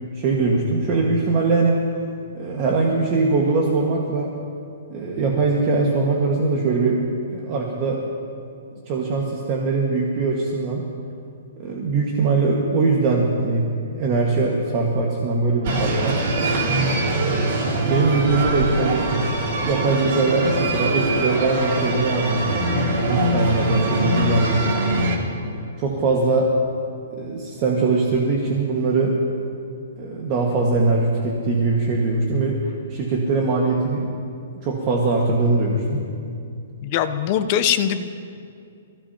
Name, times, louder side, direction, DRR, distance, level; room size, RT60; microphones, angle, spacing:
voice 1, 0.1-1.8 2.3-4.3 4.9-7.0 7.3-8.0 8.9-10.8 11.6-16.2 17.3-19.1 19.6-22.6 23.1-24.7 25.8-26.5 27.1-29.1 30.0-34.1 34.6-36.0, right 3 dB, 30° right, -2 dB, 1.7 m, -21 dB
sound 1, 15.6-25.2, right 2 dB, 45° right, 2.9 m, -23 dB
voice 2, 36.8-38.2, left 9 dB, 30° left, 9 dB, 0.7 m, -22 dB
29.0 x 16.5 x 2.9 m, 2.5 s
hypercardioid pair, 165°, 0 cm